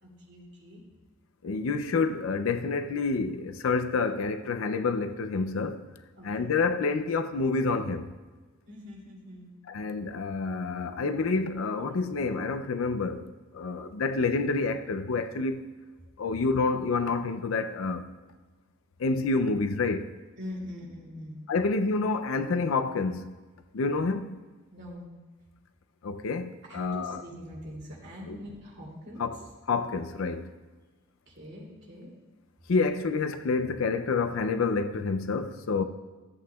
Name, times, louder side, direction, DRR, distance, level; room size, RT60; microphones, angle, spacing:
voice 1, 0.0-0.8 6.2-6.3 8.7-9.5 20.4-21.4 24.7-25.1 26.7-29.3 31.3-32.1, left 1 dB, 60° right, 2.6 m, -43 dB
voice 2, 1.4-5.8 6.2-8.1 9.7-15.7 16.2-18.1 19.0-20.1 21.5-23.3 23.7-24.4 26.0-27.2 28.3-28.4 29.2-29.4 29.7-30.5 32.7-35.8, left 4 dB, 90° left, 0.5 m, -28 dB
14.0 x 8.1 x 2.3 m
head